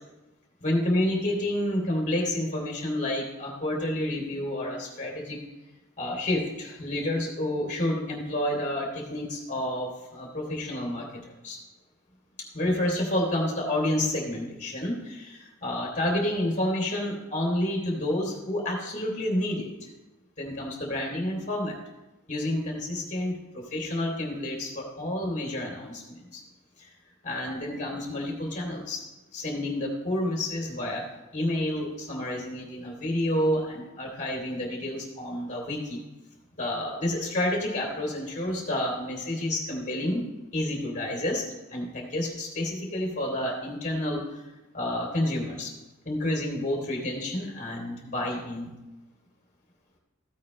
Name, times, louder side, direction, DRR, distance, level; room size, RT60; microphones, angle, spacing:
voice 1, 0.6-5.4 6.0-11.6 12.4-19.9 20.4-21.8 22.3-26.4 26.8-26.9 27.2-29.1 29.3-31.1 31.3-36.0 36.5-40.3 40.5-41.4 41.7-44.5 44.7-45.7 46.0-48.7, left 1 dB, 35° left, -1 dB, 2.9 m, -29 dB
14.5 x 8.7 x 3.2 m, 1.0 s
head